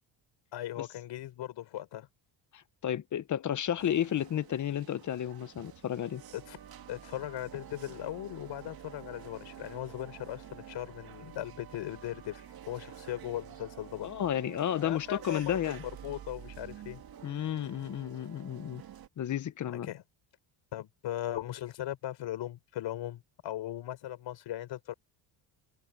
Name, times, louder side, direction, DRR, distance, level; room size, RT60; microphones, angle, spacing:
voice 1, 0.5-2.1 6.3-6.6 6.9-14.1 14.8-15.8 16.0-17.0 19.7-20.0 20.7-24.9, left 13 dB, 65° left, 4.5 m, -38 dB
voice 2, 2.5-6.2 14.0-15.8 17.2-18.8 19.2-19.9, left 10 dB, 40° left, 0.8 m, -32 dB
sound 1, 3.8-19.1, right 9 dB, 50° right, 2.2 m, -49 dB
cardioid pair, 130°, 46 cm